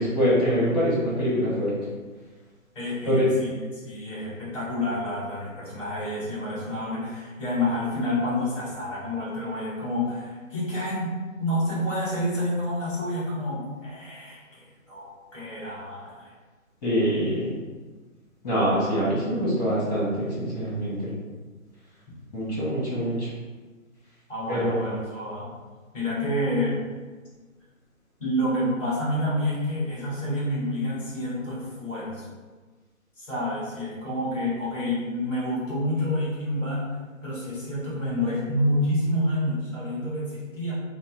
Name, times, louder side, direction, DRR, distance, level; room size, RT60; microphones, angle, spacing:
voice 1, 0.0-1.7 3.0-3.3 16.8-17.5 18.4-21.1 22.3-23.3 24.5-24.8, equal, 30° left, -8 dB, 1.4 m, -24 dB
voice 2, 2.7-11.1 11.4-16.3 24.3-25.5 25.9-26.8 28.2-32.3 33.2-36.8 37.2-40.7, left 1 dB, 5° left, -8 dB, 1.3 m, -28 dB
4.4 x 2.1 x 4.3 m, 1.4 s
figure-of-eight pair, 145°, 40 cm